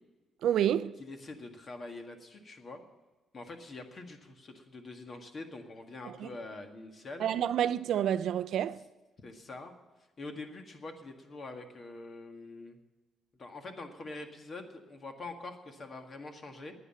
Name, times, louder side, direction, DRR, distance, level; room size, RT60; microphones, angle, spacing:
voice 1, 0.4-1.0 6.1-6.3 7.2-8.8, right 10 dB, 75° right, 0.4 m, -29 dB
voice 2, 1.0-2.8 3.3-7.3 9.2-9.7 10.2-12.8 13.4-16.7, left 2 dB, 40° left, 1.8 m, -45 dB
9.9 x 9.6 x 9.9 m
cardioid pair, 90°, 0 cm